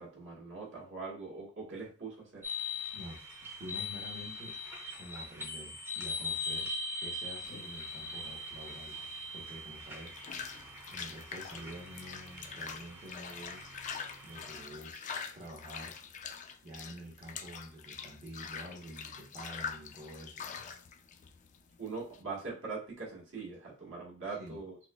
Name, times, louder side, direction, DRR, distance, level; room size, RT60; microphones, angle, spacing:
voice 1, 0.0-2.4 21.8-24.8, right 4 dB, 65° right, -4 dB, 1.5 m, -42 dB
sound 1, 2.4-14.6, left 2 dB, 10° right, 0.6 m, -41 dB
voice 2, 2.9-4.6 4.9-6.7 7.0-9.0 9.3-13.6 14.2-15.1 15.3-20.7 24.4-24.6, equal, 35° right, -5 dB, 0.9 m, -48 dB
sound 2, 7.4-22.2, left 6 dB, 35° left, 0.3 m, -45 dB
5.9 x 2.0 x 2.3 m, 0.36 s
head